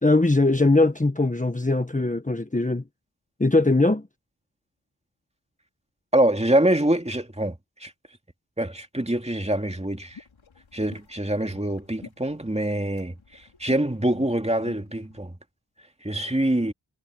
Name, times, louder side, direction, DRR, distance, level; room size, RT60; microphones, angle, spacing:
voice 1, 0.0-2.8 3.4-4.1, left 2 dB, 15° left, 1.5 m, -21 dB
voice 2, 6.1-7.5 7.8-7.9 8.6-10.2 10.7-15.3 16.0-16.7, right 1 dB, 15° right, 2.4 m, -25 dB
sound 1, 9.9-15.2, left 6 dB, 85° left, 4.7 m, -50 dB
cardioid pair, 50°, 46 cm